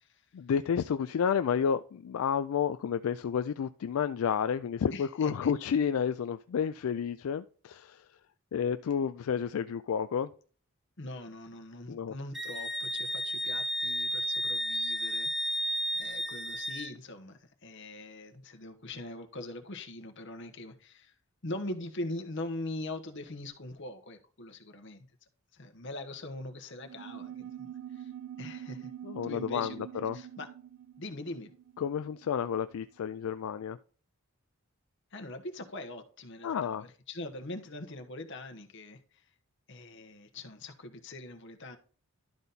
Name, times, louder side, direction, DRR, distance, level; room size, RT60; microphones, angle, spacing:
voice 1, 0.3-8.0 8.5-10.3 11.9-12.1 29.0-30.2 31.8-33.8 36.4-36.8, left 7 dB, 75° left, 0.3 m, -31 dB
voice 2, 4.9-5.5 11.0-15.6 15.9-21.1 21.4-25.1 25.5-28.1 28.4-28.9 29.2-29.9 30.1-30.5 31.0-31.5 35.1-39.2 39.7-41.8, left 2 dB, 55° left, 1.1 m, -42 dB
Wind instrument woodwind instrument, 12.3-16.9, equal, ahead, 0.4 m, -32 dB
sound 1, 26.8-32.7, right 10 dB, 80° right, 0.4 m, -45 dB
12.0 x 4.0 x 4.0 m
head